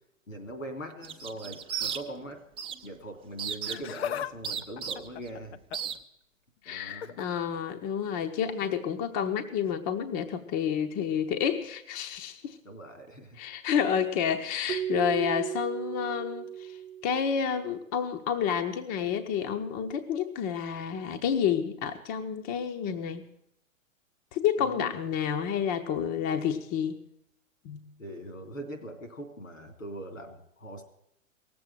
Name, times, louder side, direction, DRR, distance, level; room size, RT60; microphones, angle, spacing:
voice 1, 0.3-2.4 2.8-5.6 6.6-7.2 12.6-13.4 24.6-24.9 28.0-30.8, right 1 dB, 80° left, 6 dB, 3.2 m, -41 dB
sound 1, 1.0-2.3 2.6-2.9 3.4-4.0 4.4-5.3 5.7-6.0, right 8 dB, 15° right, 0.7 m, -34 dB
Laughter, 3.5-4.3 4.6-6.0 6.9-7.3 8.6-8.7 9.7-9.8, left 9 dB, 55° left, 0.7 m, -37 dB
voice 2, 6.6-12.6 13.4-16.8 17.0-23.2 24.3-27.0 27.6-27.9, left 8 dB, 30° left, 5 dB, 0.9 m, -29 dB
Keyboard (musical), 14.7-17.5, right 10 dB, 70° right, 0.7 m, -35 dB
18.0 x 7.8 x 9.0 m, 0.76 s
figure-of-eight pair, 105°, 39 cm